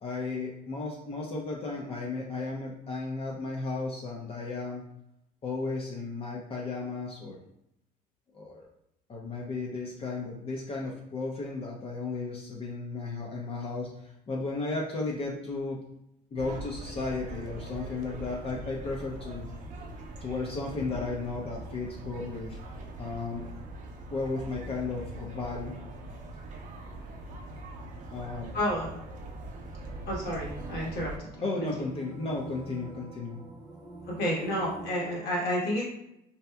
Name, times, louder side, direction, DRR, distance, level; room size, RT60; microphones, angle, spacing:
voice 1, 0.0-4.8 5.4-7.4 8.3-8.7 9.1-15.8 16.3-19.5 20.2-22.6 23.0-23.4 24.1-25.8 28.1-28.5 31.4-33.4, left 3 dB, 35° left, -2 dB, 0.5 m, -34 dB
sound 1, 16.4-31.2, right 2 dB, 50° right, 0.5 m, -42 dB
voice 2, 28.5-28.9 30.1-31.3 31.6-31.7 34.1-35.8, equal, 70° left, -4 dB, 1.3 m, -30 dB
sound 2, 29.8-35.2, right 2 dB, 25° right, 0.8 m, -45 dB
3.2 x 2.7 x 2.2 m, 0.81 s
cardioid pair, 110°, 17 cm